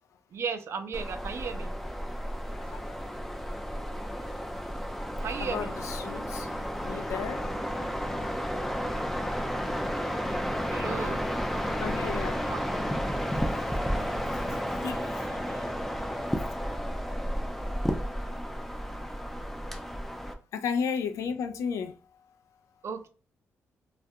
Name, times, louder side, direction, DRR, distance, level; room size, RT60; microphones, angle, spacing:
voice 1, 0.3-1.8 5.2-5.7 10.7-11.3 12.5-12.7 15.5-15.6 22.8-23.1, right 6 dB, 60° right, 0.4 m, -36 dB
sound 1, 0.9-20.3, equal, 5° left, 0.4 m, -32 dB
voice 2, 2.5-2.9 5.4-7.7 8.8-9.0 9.6-9.8 10.9-11.2 11.8-12.5 14.3-15.3 16.6-16.8 20.5-22.0, left 6 dB, 85° left, 0.3 m, -35 dB
2.3 x 2.2 x 2.6 m
cardioid pair, 95°, 5 cm